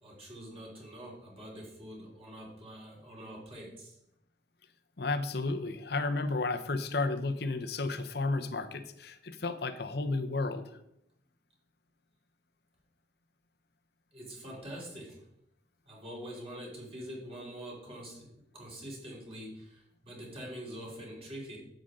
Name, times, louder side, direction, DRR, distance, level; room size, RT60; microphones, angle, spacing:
voice 1, 0.0-3.9 14.1-15.2 15.9-21.6, equal, 35° right, -3 dB, 3.2 m, -45 dB
voice 2, 5.0-10.7, left 3 dB, 65° left, 10 dB, 0.8 m, -32 dB
10.5 x 7.9 x 3.7 m, 0.81 s
head